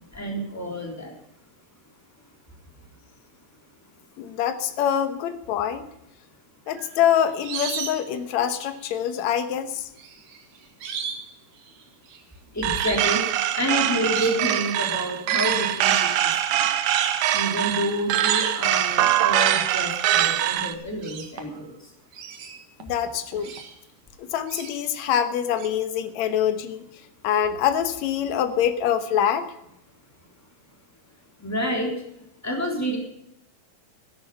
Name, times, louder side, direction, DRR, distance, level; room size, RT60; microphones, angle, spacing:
voice 1, 0.1-1.1 12.5-13.3 13.6-16.7 17.3-21.9 31.4-31.9 32.4-33.0, equal, 5° left, 0 dB, 2.7 m, -29 dB
voice 2, 4.2-5.9 6.7-9.8 22.8-23.5 24.2-26.8 27.2-29.5, left 9 dB, 70° left, 10 dB, 1.8 m, -25 dB
sound 1, 6.7-8.2 8.5-9.0 10.0-11.3 11.6-12.2 12.8-13.2 13.8-14.4 15.5-15.8 16.4-16.5 16.8-17.3 18.2-18.8 20.2-20.3 20.6-21.7 22.1-23.8 24.5-25.0 25.6-25.7, right 6 dB, 60° right, 3.0 m, -35 dB
sound 2, 12.6-20.7, right 12 dB, 80° right, 1.8 m, -23 dB
14.0 x 11.5 x 5.4 m, 0.79 s
omnidirectional pair, 4.6 m